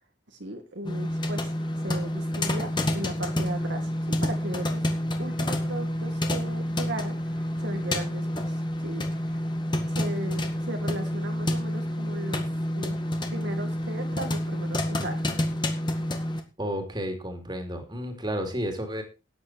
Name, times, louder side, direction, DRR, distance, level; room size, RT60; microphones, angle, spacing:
voice 1, 0.3-1.5 1.8-3.9 4.2-4.8 5.2-12.5 12.7-13.0 13.3-15.2, right 1 dB, 60° right, 4 dB, 2.2 m, -37 dB
sound 1, 0.8-16.4, left 1 dB, 20° left, 1.9 m, -29 dB
voice 2, 16.6-19.0, equal, 20° right, 5 dB, 3.1 m, -32 dB
13.5 x 9.8 x 4.5 m, 0.30 s
head